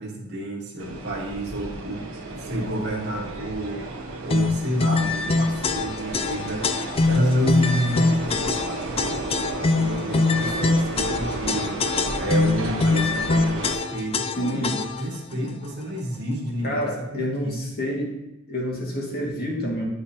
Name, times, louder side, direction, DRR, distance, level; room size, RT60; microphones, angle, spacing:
voice 1, 0.0-2.0 2.3-6.7 7.0-9.2 9.7-11.8 12.2-14.7 15.0-17.6, right 1 dB, 55° right, -2 dB, 1.8 m, -29 dB
sound 1, 0.8-13.7, right 2 dB, 70° right, 1.3 m, -33 dB
sound 2, 4.3-15.2, left 3 dB, 30° left, 0.4 m, -23 dB
voice 2, 14.4-14.8 15.3-15.5 16.6-18.2 18.5-19.8, equal, 50° left, -2 dB, 2.0 m, -28 dB
11.0 x 5.1 x 2.9 m, 0.99 s
head